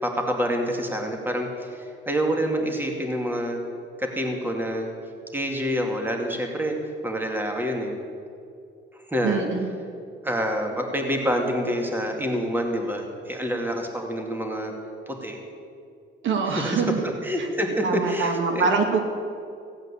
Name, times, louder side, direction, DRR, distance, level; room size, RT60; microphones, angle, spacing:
voice 1, 0.0-3.6 4.0-4.9 5.3-6.8 7.0-8.0 9.1-9.4 10.2-14.7 15.1-15.4 16.5-16.8 17.2-18.7, equal, 10° right, 2 dB, 2.5 m, -27 dB
voice 2, 9.2-9.7 16.2-17.0 17.4-17.5 17.8-19.0, right 5 dB, 75° right, 4 dB, 2.4 m, -24 dB
16.0 x 8.9 x 8.5 m, 2.4 s
cardioid pair, 90°, 20 cm